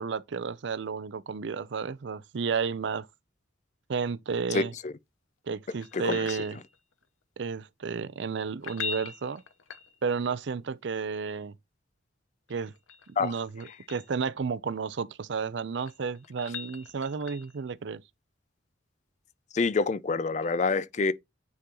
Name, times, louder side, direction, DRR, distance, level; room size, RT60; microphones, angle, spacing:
voice 1, 0.0-3.1 3.9-4.7 5.5-6.6 7.4-9.4 10.0-11.5 12.5-12.7 13.1-18.0, right 5 dB, 65° right, 0.5 m, -32 dB
voice 2, 4.5-4.9 5.9-6.4 13.2-13.3 19.5-21.1, left 4 dB, 35° left, 0.4 m, -27 dB
sound 1, 5.8-7.0 8.5-10.3 12.5-14.1 15.5-17.6 20.4-20.5, left 6 dB, 85° left, 0.8 m, -41 dB
9.5 x 3.8 x 2.9 m
head